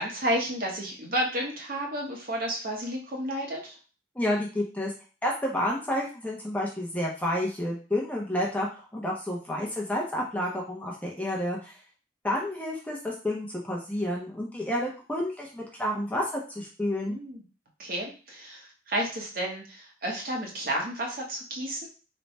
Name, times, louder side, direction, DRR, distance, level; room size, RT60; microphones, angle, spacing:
voice 1, 0.0-3.8 17.1-17.4 17.8-21.9, right 1 dB, 50° right, -1 dB, 1.0 m, -31 dB
voice 2, 4.1-4.9 5.2-11.8 12.2-17.2, left 1 dB, 10° left, -3 dB, 0.7 m, -30 dB
3.3 x 2.3 x 4.1 m, 0.35 s
head